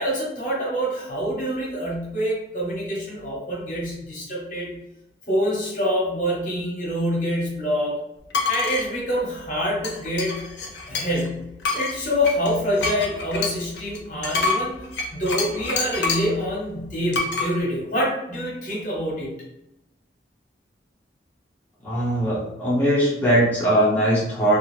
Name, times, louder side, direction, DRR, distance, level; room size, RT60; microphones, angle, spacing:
voice 1, 0.0-4.8 5.3-8.0 8.5-10.5 10.9-11.5 11.7-14.8 15.1-19.3, equal, 45° left, -5 dB, 1.0 m, -26 dB
sound 1, 8.3-8.9 9.8-11.3 11.6-16.4 17.1-17.5, left 4 dB, 80° left, 0.5 m, -27 dB
voice 2, 21.8-24.6, right 1 dB, 10° left, -9 dB, 0.9 m, -20 dB
2.4 x 2.3 x 3.2 m, 0.88 s
head